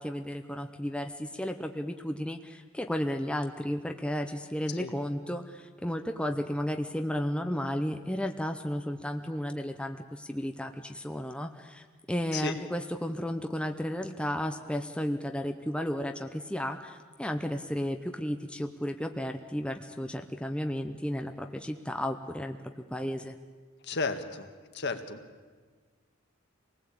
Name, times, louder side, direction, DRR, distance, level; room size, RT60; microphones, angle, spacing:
voice 1, 0.0-23.4, equal, 5° left, 5 dB, 0.8 m, -33 dB
voice 2, 23.8-25.2, left 4 dB, 55° left, 6 dB, 1.8 m, -34 dB
26.0 x 19.0 x 8.6 m, 1.5 s
head